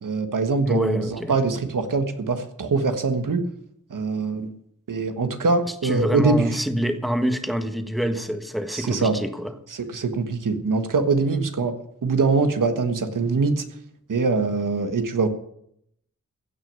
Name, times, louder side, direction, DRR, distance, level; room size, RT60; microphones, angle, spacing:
voice 1, 0.0-3.4 3.9-4.5 4.9-6.6 8.7-9.2 9.7-11.7 12.0-13.6 14.1-15.3, right 4 dB, 85° right, 1.5 m, -23 dB
voice 2, 0.7-1.4 5.8-9.5, equal, ahead, 1.4 m, -26 dB
16.0 x 6.3 x 9.5 m
wide cardioid pair, 105°, 31 cm